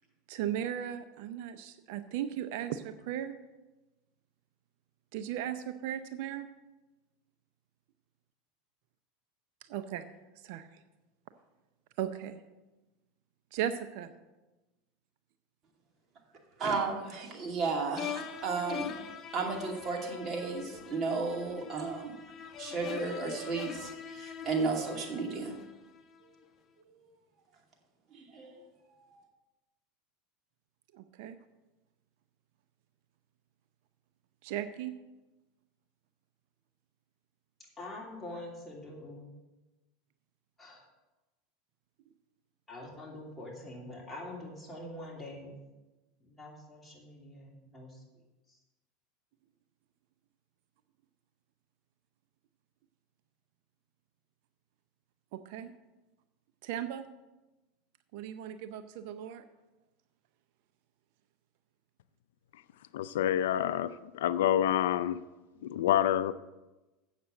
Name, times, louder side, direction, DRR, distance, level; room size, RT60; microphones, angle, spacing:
voice 1, 0.3-3.4 5.1-6.5 9.7-10.1 10.4-10.7 12.0-12.4 13.5-14.1 30.9-31.4 34.4-34.9 55.3-55.7 56.6-57.1 58.1-59.4, right 10 dB, 65° right, 10 dB, 0.6 m, -36 dB
voice 2, 16.6-18.9 19.3-22.1 22.6-25.6 28.1-28.5 29.1-29.2, right 4 dB, 35° right, 0 dB, 2.4 m, -33 dB
sound 1, 18.0-26.2, left 8 dB, 35° left, 0.9 m, -43 dB
voice 3, 37.8-39.3 40.6-40.8 42.7-45.6 46.4-47.9, left 1 dB, 10° left, -2 dB, 2.9 m, -44 dB
voice 4, 62.9-65.2 65.6-66.3, left 11 dB, 85° left, 15 dB, 0.4 m, -28 dB
8.1 x 6.8 x 7.6 m, 1.1 s
supercardioid pair, 115°, 0 cm